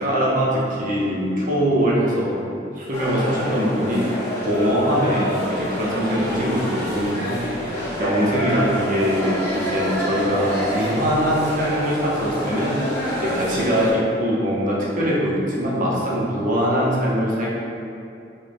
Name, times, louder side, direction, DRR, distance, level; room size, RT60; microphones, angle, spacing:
voice 1, 0.0-2.4 2.7-4.0 4.4-12.9 13.2-17.5, equal, 45° right, -5 dB, 0.7 m, -22 dB
sound 1, 2.9-13.9, equal, 15° left, 0.9 m, -27 dB
5.1 x 2.2 x 2.6 m, 2.6 s
head